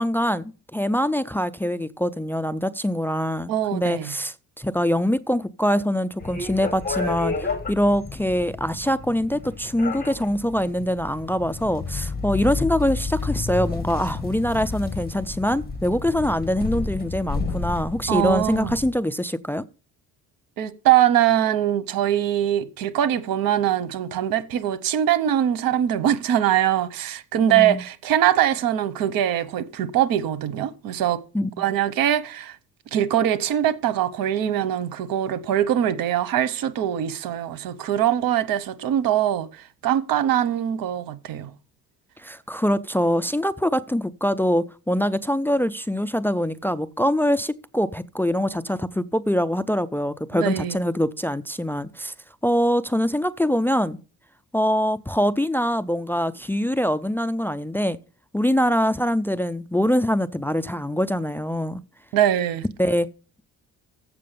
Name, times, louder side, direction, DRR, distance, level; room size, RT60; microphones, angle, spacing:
voice 1, 0.0-19.6 27.5-27.8 31.3-31.5 42.2-52.1 52.4-54.0 54.5-58.0 58.3-61.8 62.8-63.1, equal, 5° left, 0.4 m, -24 dB
voice 2, 3.5-4.1 18.1-18.7 20.6-31.2 31.6-32.6 32.9-41.5 50.3-50.8 62.1-62.7, right 11 dB, 85° right, 0.9 m, -22 dB
sound 1, 6.2-18.9, left 4 dB, 30° left, 1.8 m, -31 dB
7.7 x 6.1 x 6.7 m
cardioid pair, 95°, 34 cm